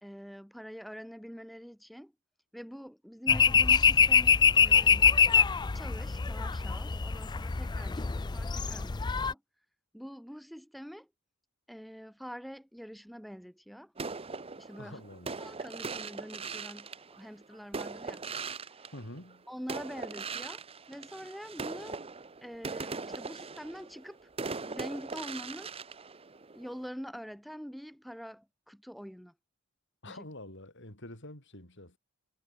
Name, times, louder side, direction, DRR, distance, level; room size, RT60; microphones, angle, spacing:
voice 1, 0.0-2.1 2.5-5.4 5.7-9.4 9.9-11.1 11.7-13.9 14.6-15.0 15.4-18.2 18.6-18.9 19.5-22.0 22.4-24.3 24.7-25.7 26.5-29.3 30.1-30.2, equal, ahead, 1.2 m, -45 dB
sound 1, 3.3-9.3, left 6 dB, 20° left, 0.4 m, -24 dB
sound 2, 14.0-19.4 19.7-26.9, right 4 dB, 25° right, 0.9 m, -40 dB
voice 2, 14.8-15.3 18.9-19.5 30.0-32.0, left 1 dB, 55° left, 7.5 m, -46 dB
head